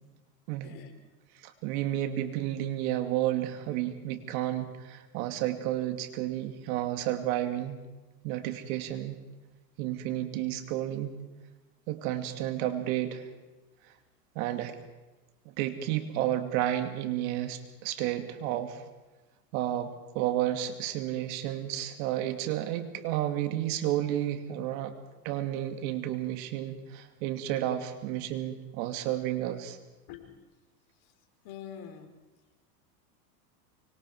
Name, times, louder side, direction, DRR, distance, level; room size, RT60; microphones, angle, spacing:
voice 1, 1.4-7.8 8.2-9.2 9.8-11.1 11.9-13.3 14.3-14.7 15.6-18.8 19.5-24.9 25.2-29.8, right 12 dB, 60° right, 8 dB, 2.6 m, -31 dB
voice 2, 30.1-30.4 31.4-32.1, left 9 dB, 50° left, 6 dB, 4.2 m, -44 dB
24.5 x 24.5 x 4.8 m, 1.1 s
hypercardioid pair, 105°, 48 cm